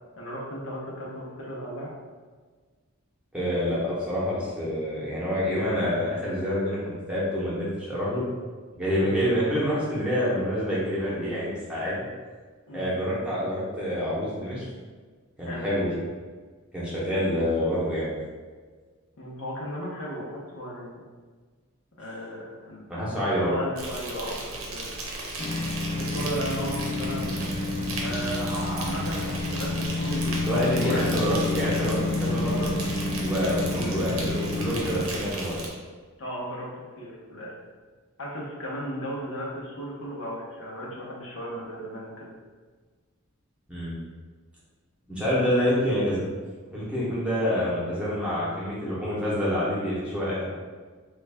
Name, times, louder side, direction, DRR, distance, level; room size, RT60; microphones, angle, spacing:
voice 1, 0.2-1.9 9.0-9.2 12.7-12.9 15.5-15.7 19.2-21.0 22.0-24.9 25.9-27.6 28.0-31.1 33.7-33.8 36.2-36.7 37.0-37.5 38.2-42.3 45.3-45.8, equal, 65° left, -5 dB, 0.8 m, -35 dB
voice 2, 3.3-6.8 7.1-8.2 8.8-12.0 12.7-14.6 15.4-15.9 16.7-18.1 22.9-23.5 30.4-32.7 33.2-35.6 43.7-44.0 45.1-46.2 46.7-50.5, equal, 5° right, -8 dB, 0.9 m, -27 dB
Insect, 23.8-35.7, right 2 dB, 75° right, 0.7 m, -36 dB
sound 1, 25.4-35.0, left 2 dB, 30° left, 0.6 m, -29 dB
3.2 x 2.3 x 3.3 m, 1.5 s
head